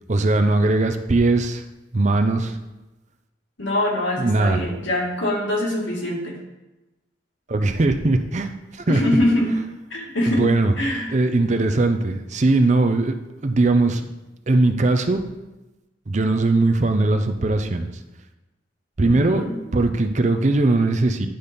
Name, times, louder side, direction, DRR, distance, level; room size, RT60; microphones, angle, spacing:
voice 1, 0.1-1.6 1.9-2.6 4.2-4.6 7.5-9.0 10.3-10.7 11.1-13.2 13.4-14.1 14.5-15.2 16.1-17.9 19.0-19.4 19.7-21.3, right 2 dB, 40° right, 7 dB, 0.5 m, -20 dB
voice 2, 3.6-6.4 8.9-9.5 9.9-11.1 19.0-19.5, left 1 dB, 85° left, -2 dB, 2.2 m, -23 dB
10.0 x 4.2 x 5.2 m, 1.0 s
head